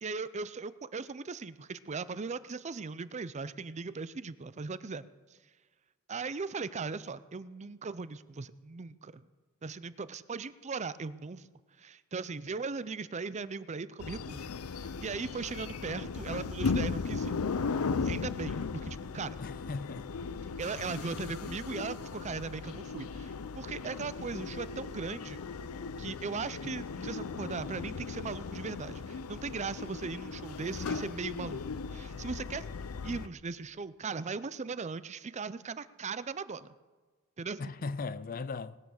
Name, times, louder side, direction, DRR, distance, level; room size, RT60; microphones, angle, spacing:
voice 1, 0.0-5.0 6.1-9.3 9.6-11.5 11.8-17.3 18.0-19.4 20.6-25.4 26.0-31.6 31.9-32.6 33.0-36.7 37.4-37.7, right 4 dB, 35° right, 0.5 m, -38 dB
sound 1, 14.0-33.3, left 4 dB, 90° left, 0.6 m, -37 dB
voice 2, 19.4-20.1 20.8-21.2 37.6-38.8, left 4 dB, 40° left, 0.5 m, -38 dB
19.5 x 9.5 x 6.4 m
head